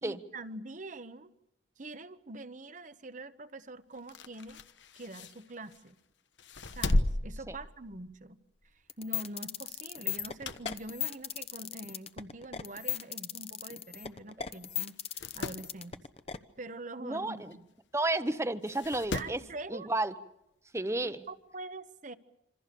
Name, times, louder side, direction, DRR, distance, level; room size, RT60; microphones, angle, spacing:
voice 1, 0.0-1.3 1.8-4.6 4.9-6.0 6.7-8.4 9.0-16.0 16.6-17.7 19.1-19.9 21.0-22.1, right 2 dB, 45° right, 1.1 m, -44 dB
sound 1, 4.0-5.9 6.4-8.3 8.6-8.8 10.1-11.0 11.4-11.5 12.4-12.5 12.7-12.8 13.0-13.1 14.0-14.2 14.5-14.6 15.0-15.7 17.5-17.6 18.6-19.5 20.8-20.9, left 1 dB, 80° left, 1.1 m, -35 dB
sound 2, 8.9-16.4, left 10 dB, 35° left, 1.0 m, -36 dB
voice 2, 17.0-17.5 17.9-19.4 19.7-20.1 20.7-21.2, right 2 dB, 15° right, 0.9 m, -32 dB
26.5 x 26.0 x 6.9 m
head